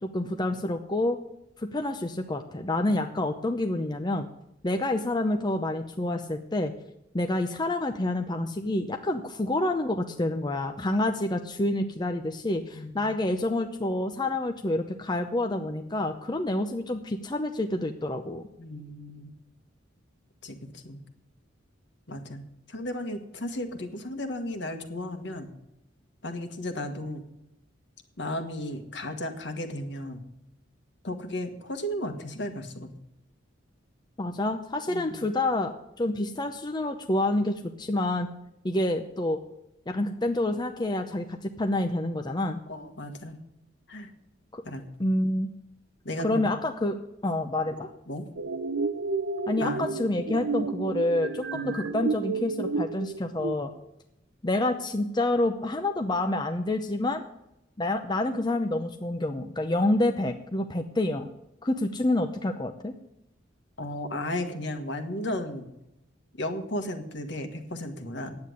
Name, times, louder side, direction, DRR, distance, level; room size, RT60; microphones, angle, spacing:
voice 1, 0.0-1.2 1.6-4.3 4.6-6.7 7.1-18.5 34.2-38.3 38.6-39.4 39.9-42.6 44.5-44.6 45.0-45.5 46.2-46.9 47.2-47.9 49.5-53.7 54.4-57.2 57.8-61.3 61.6-62.9, left 1 dB, 20° left, 6 dB, 0.6 m, -28 dB
voice 2, 12.7-13.1 18.6-19.3 20.4-21.0 22.1-22.4 22.7-25.5 26.2-27.2 28.2-30.2 31.0-32.9 34.9-35.3 42.7-43.4 43.9-44.1 44.6-44.8 46.0-46.5 47.7-48.2 49.6-49.9 51.5-51.8 63.8-65.7 66.3-68.4, left 1 dB, 60° left, 7 dB, 1.6 m, -34 dB
sound 1, 48.4-53.6, right 4 dB, 85° right, 0.8 m, -31 dB
9.6 x 8.5 x 9.5 m, 0.85 s
head